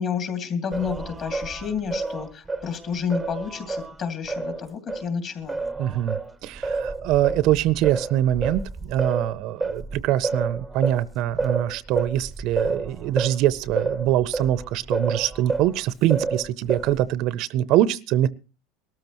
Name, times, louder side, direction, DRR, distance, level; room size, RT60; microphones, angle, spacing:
voice 1, 0.0-5.6, left 6 dB, 35° left, 2.6 m, -30 dB
Singing, 0.7-5.1 5.5-15.8 16.1-17.1, right 3 dB, 5° right, 0.7 m, -30 dB
voice 2, 5.8-18.3, right 13 dB, 50° right, 0.6 m, -23 dB
22.0 x 13.5 x 3.0 m
supercardioid pair, 135°, 0 cm